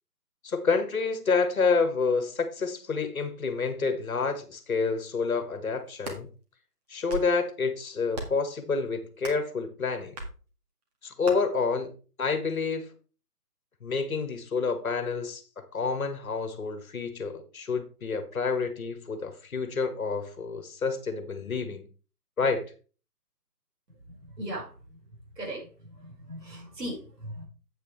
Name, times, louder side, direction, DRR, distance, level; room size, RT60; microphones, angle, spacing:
voice 1, 0.4-6.3 6.9-10.2 11.0-11.9 12.2-12.9 13.8-21.8 22.4-22.6, left 4 dB, 55° left, 1.8 m, -28 dB
sound 1, 5.8-6.2 6.9-7.4 8.1-8.5 9.2-9.5 10.2-10.3 11.2-11.4, right 1 dB, 25° right, 1.9 m, -37 dB
voice 2, 24.4-24.7 25.4-25.7 26.0-27.5, right 1 dB, 75° right, 5.2 m, -37 dB
8.5 x 8.1 x 3.3 m
figure-of-eight pair, 150°, 49 cm